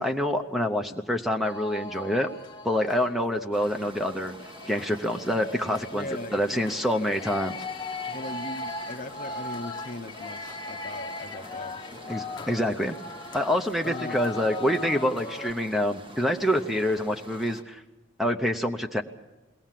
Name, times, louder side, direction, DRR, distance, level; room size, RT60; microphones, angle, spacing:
voice 1, 0.0-2.3 2.6-4.3 4.7-7.6 12.1-13.0 13.3-17.8 18.2-19.0, equal, ahead, 5 dB, 0.6 m, -26 dB
sound 1, 1.4-3.1 3.5-15.5, left 2 dB, 25° left, 1.0 m, -38 dB
sound 2, 3.5-17.6, equal, 25° right, 1.4 m, -47 dB
voice 2, 5.9-6.6 8.1-12.5 13.8-14.2, left 2 dB, 40° left, 8 dB, 0.7 m, -39 dB
21.5 x 18.0 x 7.5 m, 1.1 s
head